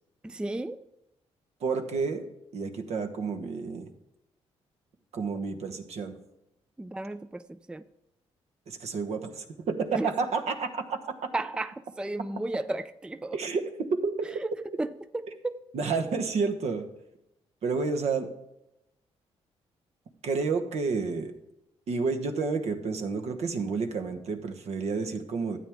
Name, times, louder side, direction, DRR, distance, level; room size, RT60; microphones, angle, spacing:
voice 1, 0.2-0.8 6.8-7.8 10.0-10.1 11.3-13.4 14.8-15.6, right 2 dB, 10° right, 0.3 m, -34 dB
voice 2, 1.6-2.3 2.5-3.9 5.1-6.2 8.7-11.0 13.3-14.3 15.7-16.9 17.6-18.3 20.2-21.3 21.9-25.6, right 4 dB, 65° right, 1.2 m, -30 dB
12.5 x 8.7 x 3.6 m
cardioid pair, 80°, 12 cm